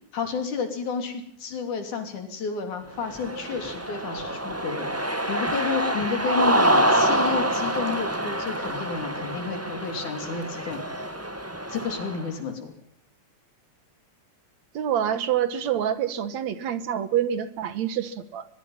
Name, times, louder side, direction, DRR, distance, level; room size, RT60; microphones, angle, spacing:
voice 1, 0.1-4.9 5.3-10.8 11.7-12.7, left 5 dB, 80° left, 6 dB, 4.6 m, -31 dB
Cheering, 3.0-12.3, right 1 dB, 10° right, 0.7 m, -26 dB
voice 2, 14.7-18.5, right 9 dB, 70° right, 13 dB, 2.5 m, -26 dB
22.5 x 22.0 x 5.7 m, 0.68 s
omnidirectional pair, 3.5 m